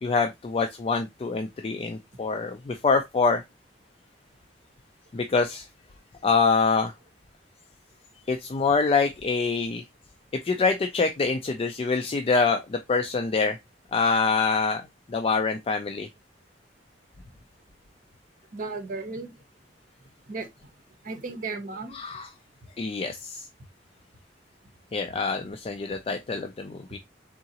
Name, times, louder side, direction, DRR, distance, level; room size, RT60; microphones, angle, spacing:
voice 1, 0.0-3.4 5.1-5.7 6.2-6.9 8.3-9.8 10.4-13.6 13.9-14.8 15.1-16.1 21.9-22.3 22.8-23.5 24.9-27.0, left 4 dB, 35° left, 0.4 m, -25 dB
voice 2, 18.5-19.3 20.3-20.5 21.0-22.0, right 3 dB, 50° right, 0.8 m, -34 dB
3.8 x 3.7 x 2.8 m
head